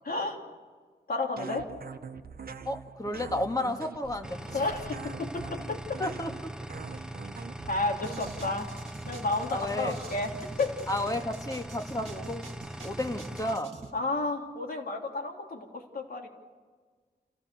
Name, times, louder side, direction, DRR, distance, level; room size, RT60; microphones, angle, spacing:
voice 1, 0.0-0.4 1.1-1.7 4.5-6.0 7.7-8.7 9.1-10.3 10.6-10.7 13.9-16.3, left 2 dB, 65° left, 1 dB, 3.3 m, -31 dB
sound 1, 1.4-8.5, right 6 dB, 65° right, 1.0 m, -44 dB
voice 2, 2.7-4.6 6.0-6.3 9.5-10.0 10.9-12.4 12.8-13.7, left 1 dB, 20° left, 4 dB, 1.9 m, -32 dB
sound 2, 4.2-13.6, right 1 dB, 5° right, 0.8 m, -41 dB
sound 3, 8.0-13.9, right 3 dB, 40° right, 2.6 m, -46 dB
29.0 x 16.0 x 7.1 m, 1.5 s
wide cardioid pair, 125°, 17 cm